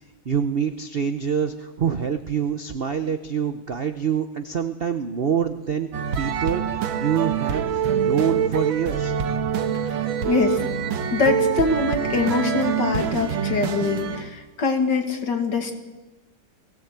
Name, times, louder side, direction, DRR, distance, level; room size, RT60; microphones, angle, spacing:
voice 1, 0.2-5.9 6.2-9.1, right 7 dB, 60° right, 9 dB, 0.6 m, -26 dB
sound 1, 5.9-14.3, right 7 dB, 80° right, 1.9 m, -25 dB
voice 2, 10.2-10.6 11.1-15.8, left 4 dB, 60° left, 5 dB, 2.7 m, -23 dB
19.5 x 17.0 x 8.1 m, 1.1 s
omnidirectional pair, 2.2 m